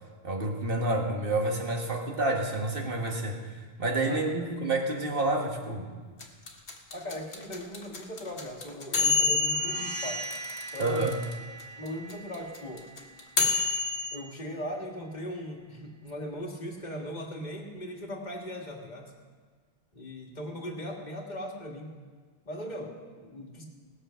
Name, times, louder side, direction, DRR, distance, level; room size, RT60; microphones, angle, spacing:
voice 1, 0.2-3.5 3.8-5.9 10.8-11.1, right 2 dB, 60° right, 1 dB, 1.7 m, -29 dB
voice 2, 4.1-4.5 6.9-10.3 10.7-11.0 11.8-12.9 14.1-19.1 19.9-21.9 22.5-23.7, equal, 45° left, 0 dB, 1.9 m, -39 dB
sound 1, 6.2-11.3 11.6-11.7 11.9-14.2, left 4 dB, 85° left, 1.6 m, -28 dB
sound 2, 9.4-15.0, right 2 dB, 25° left, 1.0 m, -43 dB
19.5 x 6.9 x 5.6 m, 1.6 s
omnidirectional pair, 1.1 m